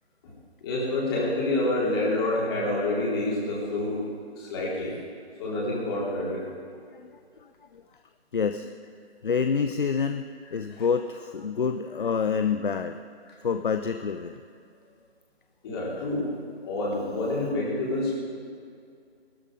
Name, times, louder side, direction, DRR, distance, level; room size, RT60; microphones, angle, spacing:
voice 1, 0.6-4.0 4.4-4.9 5.4-6.5 10.8-10.9 15.6-16.3 16.6-18.1, left 2 dB, 25° left, -6 dB, 3.9 m, -27 dB
voice 2, 6.9-7.8 8.3-8.8 9.2-13.0 13.4-14.4, left 6 dB, 50° left, 9 dB, 0.6 m, -28 dB
18.5 x 13.0 x 5.0 m, 2.3 s
figure-of-eight pair, 150°, 32 cm